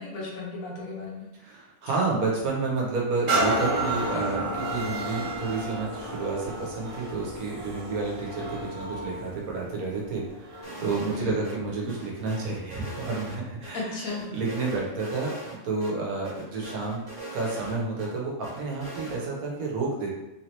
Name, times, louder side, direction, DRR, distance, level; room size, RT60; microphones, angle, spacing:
voice 1, 0.0-1.3 11.1-11.4 13.7-14.2, left 3 dB, 70° left, -4 dB, 1.4 m, -34 dB
voice 2, 1.3-15.3 15.6-17.0 17.3-20.1, right 3 dB, 85° right, -2 dB, 1.4 m, -30 dB
sound 1, 3.3-10.9 11.4-11.6, right 1 dB, 45° right, 0.9 m, -31 dB
sound 2, 10.6-11.2 11.4-11.6 11.9-13.7 14.1-15.6 15.8-15.9 16.2-18.1 18.4-19.2, right 1 dB, 60° right, 1.5 m, -40 dB
3.6 x 3.1 x 2.9 m, 0.93 s
omnidirectional pair, 1.5 m